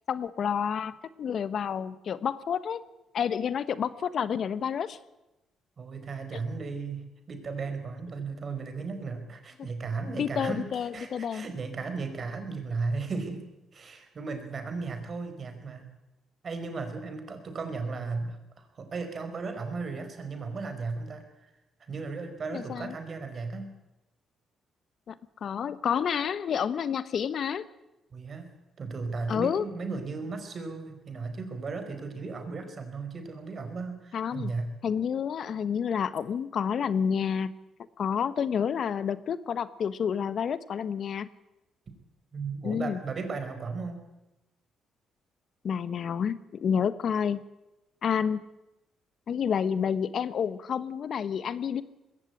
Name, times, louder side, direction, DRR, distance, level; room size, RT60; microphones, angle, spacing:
voice 1, 0.1-2.8 3.1-5.0 6.3-6.4 9.6-9.7 10.2-11.5 22.5-22.9 25.1-25.2 25.4-27.7 29.3-29.6 34.1-34.5 34.8-37.5 38.0-41.3 42.6-43.0 45.6-47.4 48.0-48.4 49.3-51.8, left 7 dB, 60° left, 15 dB, 1.0 m, -29 dB
voice 2, 5.8-13.5 13.7-15.8 16.4-21.2 21.9-23.7 28.1-34.7 42.3-44.0, right 4 dB, 45° right, 7 dB, 4.8 m, -35 dB
20.5 x 16.5 x 9.9 m, 0.95 s
cardioid pair, 90°, 0 cm